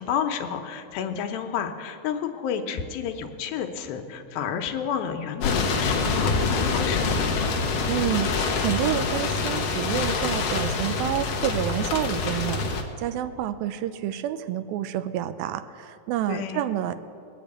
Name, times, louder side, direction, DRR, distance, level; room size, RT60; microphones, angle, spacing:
voice 1, 0.0-7.1 16.3-16.7, left 7 dB, 90° left, 6 dB, 2.7 m, -30 dB
sound 1, 5.4-12.8, left 4 dB, 65° left, 1.5 m, -25 dB
voice 2, 7.9-16.9, right 11 dB, 90° right, 11 dB, 2.4 m, -29 dB
20.0 x 7.0 x 8.5 m, 2.5 s
omnidirectional pair, 4.1 m